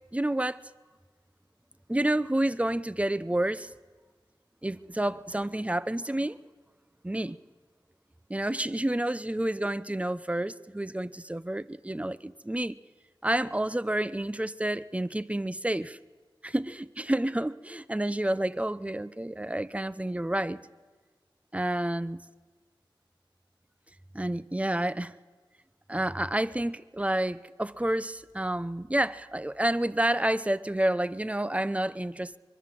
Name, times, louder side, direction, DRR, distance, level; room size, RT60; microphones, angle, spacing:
voice 1, 0.1-0.7 1.9-3.7 4.6-6.4 7.0-7.4 8.3-12.7 13.2-16.0 16.4-20.6 21.5-22.2 24.1-25.1 25.9-32.4, right 1 dB, 15° right, 0.8 m, -29 dB
23.0 x 23.0 x 7.8 m
wide cardioid pair, 70°, 9 cm